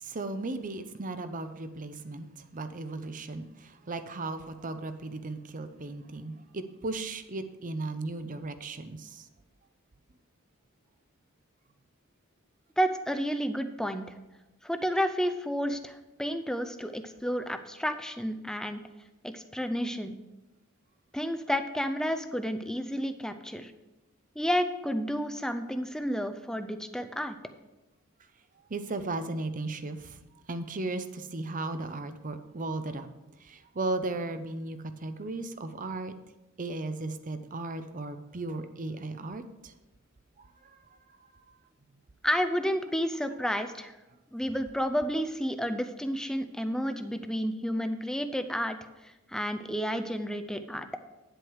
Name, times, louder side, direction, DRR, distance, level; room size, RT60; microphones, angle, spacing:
voice 1, 0.0-2.3 2.5-9.3 28.7-30.2 30.5-33.1 33.4-36.1 36.6-39.7 40.4-40.5 41.5-41.6, right 2 dB, 40° right, 10 dB, 0.7 m, -36 dB
voice 2, 12.8-14.2 14.6-18.8 19.2-20.2 21.1-23.7 24.4-27.4 42.2-43.9 44.3-48.8 49.3-50.9, equal, 5° left, 8 dB, 0.6 m, -31 dB
9.7 x 7.9 x 4.7 m, 1.0 s
head